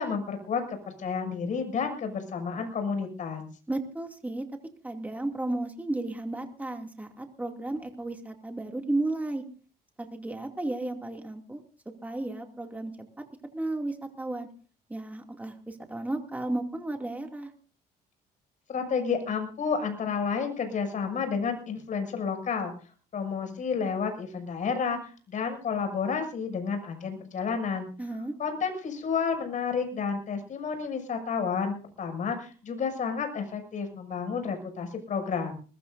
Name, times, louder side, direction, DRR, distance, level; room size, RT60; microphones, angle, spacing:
voice 1, 0.0-3.4 18.7-22.7 23.1-27.9 28.4-35.5, left 5 dB, 50° left, 5 dB, 6.7 m, -31 dB
voice 2, 3.7-4.5 4.8-9.4 10.0-11.6 12.0-12.9 13.5-14.5 14.9-17.5 28.0-28.3, right 2 dB, 10° right, 3 dB, 2.6 m, -33 dB
21.5 x 21.0 x 2.7 m, 0.39 s
cardioid pair, 110°, 17 cm